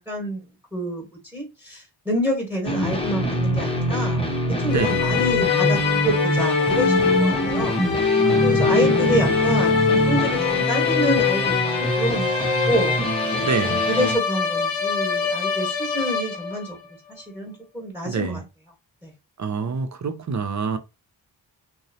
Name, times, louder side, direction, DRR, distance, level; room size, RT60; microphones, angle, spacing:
voice 1, 0.1-0.4 0.7-1.1 1.3-4.2 4.6-7.8 8.4-13.0 13.3-13.4 13.9-16.8 17.2-18.4 19.0-19.1, equal, 5° right, 1.3 m, -27 dB
sound 1, 2.6-14.2, equal, 10° left, 0.7 m, -24 dB
sound 2, 4.7-16.8, left 6 dB, 75° left, 0.7 m, -23 dB
voice 2, 8.2-9.4 13.4-13.9 18.0-18.4 19.4-20.8, right 5 dB, 40° right, 0.5 m, -27 dB
2.7 x 2.0 x 2.6 m
cardioid pair, 45°, 46 cm